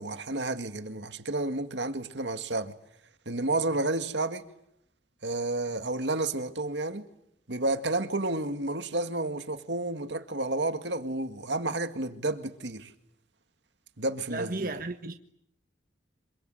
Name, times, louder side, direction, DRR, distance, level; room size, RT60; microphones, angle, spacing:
voice 1, 0.0-2.7 3.3-4.4 5.2-7.0 7.5-12.9 14.0-14.7, right 2 dB, 75° right, 2.1 m, -31 dB
voice 2, 14.3-15.1, right 2 dB, 50° right, 1.4 m, -34 dB
27.0 x 24.0 x 9.2 m
head